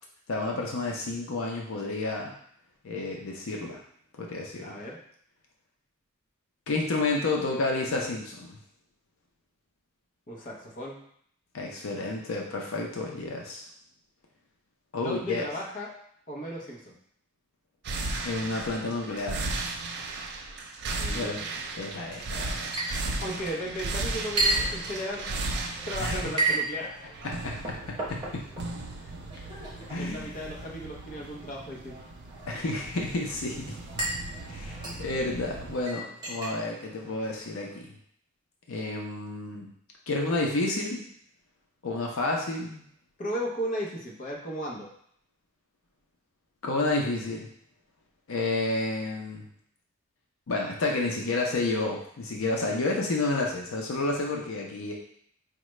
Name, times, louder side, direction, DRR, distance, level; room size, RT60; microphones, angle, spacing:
voice 1, 0.3-2.4 2.8-3.8 4.1-4.8 6.7-8.6 11.5-13.7 14.9-15.4 18.2-19.5 21.1-21.4 21.8-22.8 26.0-26.3 27.2-28.4 29.9-30.3 32.5-33.8 34.5-38.0 38.7-39.7 40.1-41.1 41.8-42.8 46.6-47.5 48.3-49.4 50.5-54.9, left 2 dB, 85° left, 0 dB, 0.6 m, -30 dB
voice 2, 4.6-5.0 10.3-11.0 15.0-16.0 16.3-17.0 21.0-21.4 23.2-25.4 25.8-27.1 28.9-29.1 30.0-32.0 43.2-44.9, equal, 40° left, -2 dB, 0.8 m, -35 dB
sound 1, 17.8-35.8, right 2 dB, 55° right, 0.4 m, -36 dB
Chink clink, 22.7-37.8, right 2 dB, 25° right, 0.9 m, -35 dB
4.8 x 2.2 x 3.1 m, 0.65 s
head